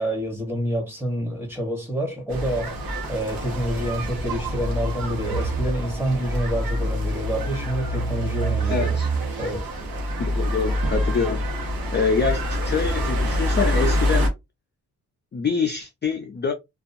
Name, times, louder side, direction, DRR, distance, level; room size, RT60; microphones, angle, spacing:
voice 1, 0.0-2.8 3.1-9.0 9.4-9.7, equal, 5° right, 1.0 m, -27 dB
sound 1, 2.3-14.3, equal, 75° right, 1.0 m, -26 dB
voice 2, 8.7-9.1 10.2-11.4 11.9-14.3 15.3-16.5, left 5 dB, 30° left, 0.4 m, -25 dB
2.6 x 2.3 x 2.5 m
wide cardioid pair, 155°, 36 cm